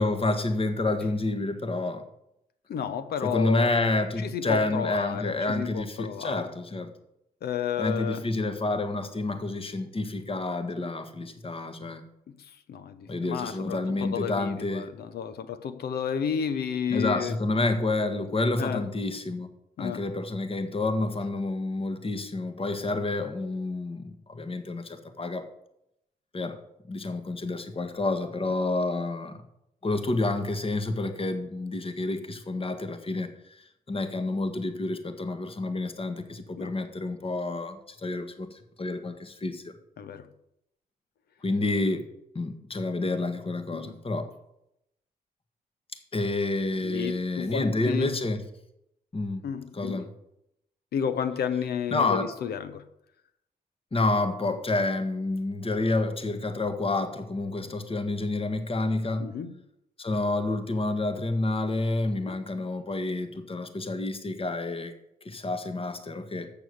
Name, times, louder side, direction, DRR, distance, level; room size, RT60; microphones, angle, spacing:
voice 1, 0.0-2.1 3.2-6.9 7.8-12.0 13.1-14.9 16.9-25.5 26.3-26.6 26.9-29.4 29.8-39.7 41.4-42.1 42.3-44.3 46.1-48.4 49.1-49.4 49.7-50.1 51.9-52.3 53.9-59.3 60.0-64.9 65.2-66.5, left 2 dB, 35° left, 1.4 m, -29 dB
voice 2, 2.7-3.7 4.2-6.4 7.4-8.2 10.8-10.9 12.7-17.3 18.6-18.8 19.8-20.0 36.5-36.7 40.0-40.3 43.7-43.9 46.8-48.1 49.4-50.1 50.9-52.8 59.2-59.5 62.3-62.4, left 7 dB, 80° left, 0.8 m, -32 dB
6.9 x 6.8 x 7.9 m
cardioid pair, 65°, 16 cm